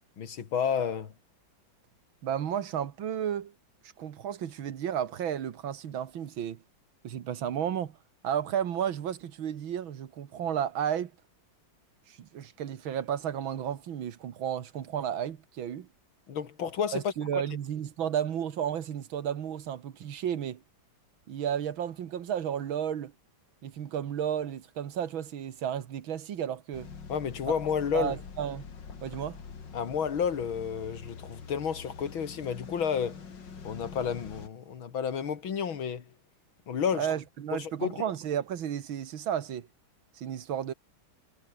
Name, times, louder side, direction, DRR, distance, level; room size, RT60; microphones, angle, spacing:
voice 1, 0.2-1.1 16.3-17.4 27.1-28.2 29.7-33.2 33.6-36.0 36.7-37.1 37.5-38.0, left 7 dB, 75° left, 2.8 m, -31 dB
voice 2, 2.2-3.5 4.0-6.6 7.0-8.0 8.2-11.1 12.1-15.9 16.9-20.6 21.3-23.1 23.6-26.9 27.5-27.6 27.9-28.6 29.0-29.4 36.9-39.7 40.1-40.7, right 9 dB, 75° right, 2.1 m, -33 dB
sound 1, 26.7-34.5, left 5 dB, 60° left, 3.1 m, -45 dB
omnidirectional pair, 2.2 m